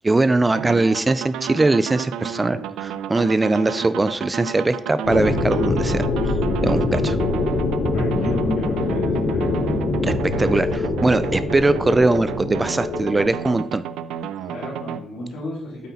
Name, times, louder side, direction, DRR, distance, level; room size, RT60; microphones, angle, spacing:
voice 1, 0.0-6.1 6.6-7.2 10.0-13.8, right 2 dB, 20° right, 14 dB, 0.4 m, -21 dB
sound 1, 0.5-15.0, right 8 dB, 85° right, 0.5 m, -32 dB
sound 2, 5.0-13.3, left 3 dB, 65° left, 3.1 m, -23 dB
voice 2, 7.9-9.5 14.5-15.9, left 1 dB, 80° left, -7 dB, 3.4 m, -35 dB
8.3 x 8.2 x 4.1 m, 0.73 s
cardioid pair, 90°, 0 cm